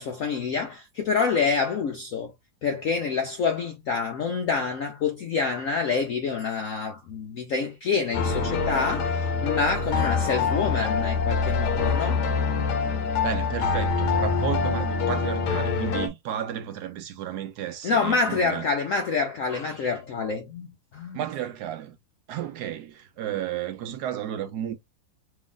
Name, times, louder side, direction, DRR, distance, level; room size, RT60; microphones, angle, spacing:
voice 1, 0.0-2.3 2.6-12.2 17.8-20.7 20.9-21.2, left 5 dB, 85° left, 0.7 m, -27 dB
sound 1, 8.1-16.1, left 4 dB, 65° left, 1.3 m, -25 dB
voice 2, 13.2-18.6 21.1-22.0 22.3-24.8, right 10 dB, 75° right, 1.0 m, -32 dB
3.4 x 2.4 x 3.6 m
omnidirectional pair, 2.1 m